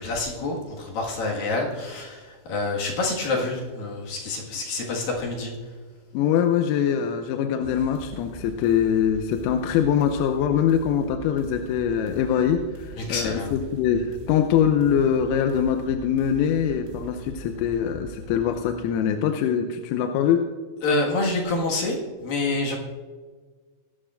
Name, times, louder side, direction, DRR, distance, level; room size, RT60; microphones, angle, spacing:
voice 1, 0.0-5.5 13.0-13.5 20.8-22.8, left 2 dB, 60° left, -2 dB, 2.8 m, -27 dB
voice 2, 6.1-20.5, left 8 dB, 90° left, 5 dB, 3.4 m, -23 dB
sound 1, 7.6-18.6, right 3 dB, 70° right, 3.5 m, -42 dB
23.0 x 11.5 x 2.5 m, 1.5 s
omnidirectional pair, 5.9 m